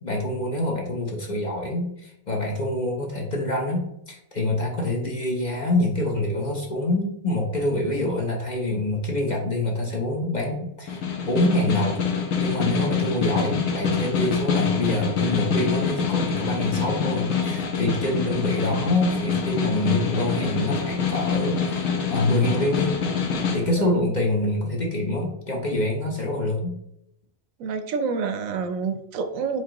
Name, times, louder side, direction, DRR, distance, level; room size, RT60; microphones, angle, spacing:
voice 1, 0.0-12.0 12.4-22.9 23.5-26.7, left 1 dB, 40° left, -1 dB, 0.8 m, -26 dB
Snare drum, 10.9-23.6, left 6 dB, 75° left, 1.2 m, -25 dB
voice 2, 27.6-29.6, right 5 dB, 80° right, 7 dB, 1.0 m, -28 dB
4.5 x 3.8 x 2.9 m, 0.77 s
omnidirectional pair, 1.4 m